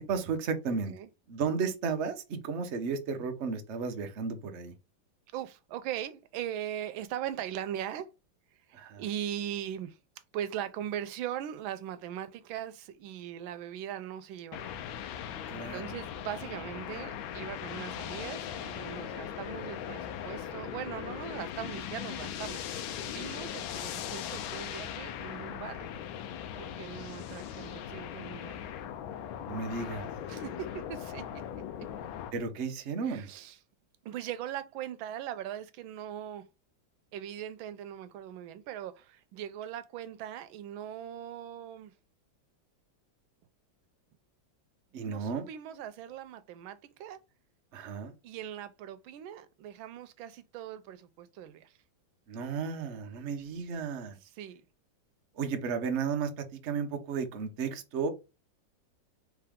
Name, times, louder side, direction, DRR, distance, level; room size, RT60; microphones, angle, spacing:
voice 1, 0.0-0.9 1.3-4.7 8.7-9.0 15.5-15.9 29.5-30.1 32.3-33.3 44.9-45.5 47.7-48.1 52.3-54.2 55.4-58.1, right 5 dB, 50° right, 0.8 m, -33 dB
voice 2, 0.7-1.1 5.3-8.1 8.7-10.0 10.3-14.7 15.3-15.5 15.7-25.9 26.6-28.7 30.3-31.2 33.0-33.6 34.0-36.4 37.1-41.9 45.0-47.2 48.2-51.7 54.3-54.6, right 10 dB, 90° right, 1.4 m, -40 dB
sound 1, 14.5-32.3, left 9 dB, 90° left, 1.4 m, -39 dB
4.7 x 3.0 x 3.5 m
omnidirectional pair, 2.1 m